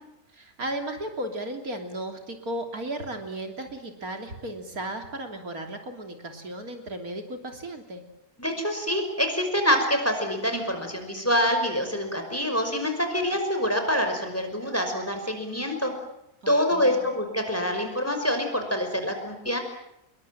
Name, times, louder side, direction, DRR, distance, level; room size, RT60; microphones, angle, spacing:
voice 1, 0.3-8.0 16.4-17.1, right 1 dB, 75° right, 4 dB, 3.7 m, -35 dB
voice 2, 8.4-15.9 16.5-19.6, equal, 10° left, 5 dB, 5.5 m, -26 dB
27.0 x 22.0 x 9.1 m, 0.83 s
omnidirectional pair, 1.5 m